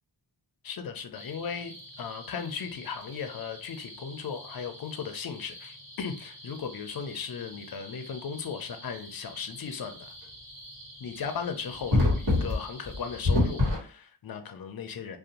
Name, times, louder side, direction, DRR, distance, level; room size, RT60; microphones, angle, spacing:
voice 1, 0.6-10.1 11.0-15.2, left 6 dB, 50° left, 7 dB, 0.5 m, -37 dB
sound 1, 1.1-13.8, left 2 dB, 50° right, 1.4 m, -33 dB
2.5 x 2.1 x 2.8 m, 0.42 s
wide cardioid pair, 90°, 45 cm